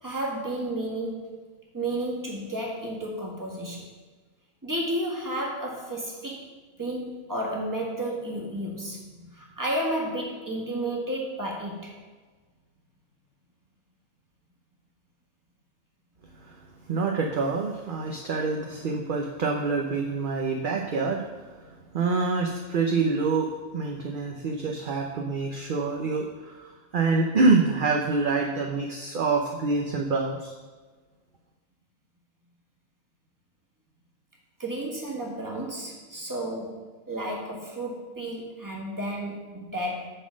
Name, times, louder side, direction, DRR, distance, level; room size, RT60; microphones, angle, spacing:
voice 1, 0.0-1.3 1.7-3.9 4.6-6.5 6.8-11.9 34.6-40.1, right 1 dB, 15° right, -2 dB, 1.7 m, -32 dB
voice 2, 16.4-30.5, right 4 dB, 50° right, 1 dB, 0.8 m, -26 dB
9.2 x 4.1 x 6.2 m, 1.3 s
omnidirectional pair, 1.2 m